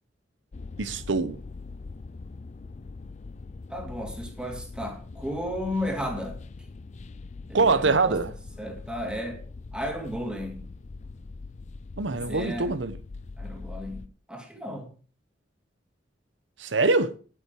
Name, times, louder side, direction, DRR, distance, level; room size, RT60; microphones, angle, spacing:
sound 1, 0.5-14.1, left 3 dB, 40° left, 0.4 m, -42 dB
voice 1, 0.8-1.4 7.5-8.3 12.0-12.9 16.6-17.1, right 3 dB, 85° right, 0.9 m, -24 dB
voice 2, 3.7-6.4 7.5-8.2 8.6-9.4 9.7-10.7 12.1-12.7 13.4-14.9, equal, 5° right, 2.3 m, -34 dB
9.8 x 9.4 x 4.7 m
head